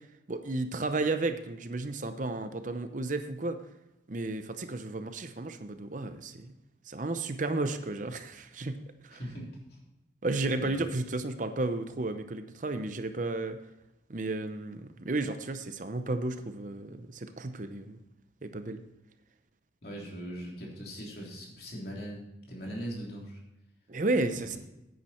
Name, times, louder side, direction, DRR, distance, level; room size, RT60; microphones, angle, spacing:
voice 1, 0.3-3.6 4.1-6.5 6.9-8.8 9.0-9.2 10.2-13.6 14.1-18.0 18.4-18.8 23.9-24.6, right 2 dB, 45° right, 9 dB, 0.7 m, -33 dB
voice 2, 9.1-9.8 10.6-10.7 19.8-23.4, equal, 55° left, -2 dB, 3.3 m, -40 dB
10.0 x 9.3 x 4.4 m, 0.92 s
head